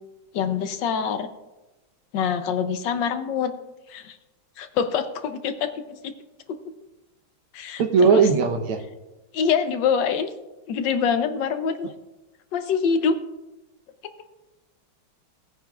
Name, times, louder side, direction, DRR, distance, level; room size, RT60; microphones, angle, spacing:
voice 1, 0.3-1.3 2.1-3.5 3.9-4.2 4.6-5.7 6.0-6.1 7.5-7.8 8.1-8.2 9.3-10.3 10.7-11.9 12.5-13.2, left 6 dB, 65° left, 9 dB, 1.3 m, -24 dB
voice 2, 7.8-8.8, right 5 dB, 80° right, 4 dB, 1.8 m, -18 dB
18.5 x 9.1 x 2.4 m, 1.0 s
omnidirectional pair, 2.3 m